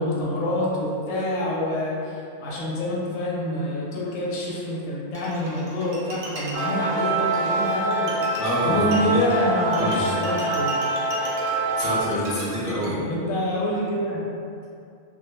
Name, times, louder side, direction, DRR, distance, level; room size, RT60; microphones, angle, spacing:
voice 1, 0.0-8.1 8.6-10.7 13.0-14.2, left 1 dB, 90° left, -5 dB, 0.9 m, -26 dB
Bowed string instrument, 5.1-12.9, right 1 dB, 60° right, 0.6 m, -37 dB
sound 1, 6.5-12.0, right 2 dB, 20° right, 0.5 m, -25 dB
voice 2, 8.4-8.9 9.1-9.2 9.8-10.1 11.8-13.0, left 1 dB, 40° left, -9 dB, 0.7 m, -27 dB
2.2 x 2.1 x 3.0 m, 2.5 s
omnidirectional pair, 1.3 m